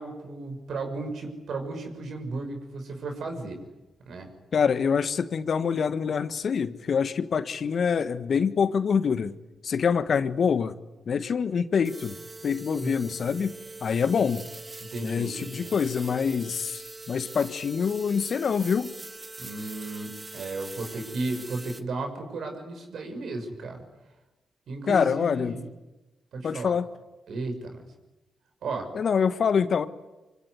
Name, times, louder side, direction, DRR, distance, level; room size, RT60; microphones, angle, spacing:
voice 1, 0.0-3.6 4.1-4.3 12.8-12.9 14.9-15.7 19.4-23.8 24.7-25.7 26.3-26.7 27.3-27.8 28.6-28.9, right 3 dB, 65° right, 6.2 m, -34 dB
voice 2, 4.5-9.3 9.6-10.7 11.1-12.2 12.4-13.5 13.8-14.4 15.0-18.9 24.9-25.6 26.4-26.9 28.9-29.9, left 6 dB, 60° left, 1.4 m, -25 dB
sound 1, 11.8-21.8, right 2 dB, 30° right, 2.2 m, -43 dB
25.0 x 24.5 x 9.6 m
hypercardioid pair, 40°, 0 cm